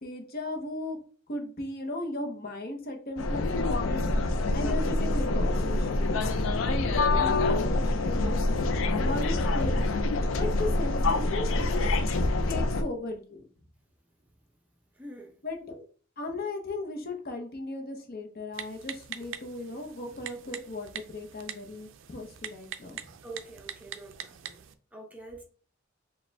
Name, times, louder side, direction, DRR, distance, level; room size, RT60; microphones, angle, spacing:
voice 1, 0.0-1.0 1.3-4.0 4.5-6.1 6.9-8.4 9.0-9.8 10.4-12.0 12.5-13.5 15.4-15.9 16.2-23.0, left 2 dB, 50° left, 0.8 m, -36 dB
sound 1, 3.2-12.8, left 2 dB, 70° left, 0.5 m, -26 dB
voice 2, 14.9-15.4 23.2-24.6 24.9-25.4, right 2 dB, 5° right, 0.6 m, -45 dB
Typing, 18.5-24.7, right 9 dB, 70° right, 0.4 m, -43 dB
4.7 x 2.3 x 3.4 m
head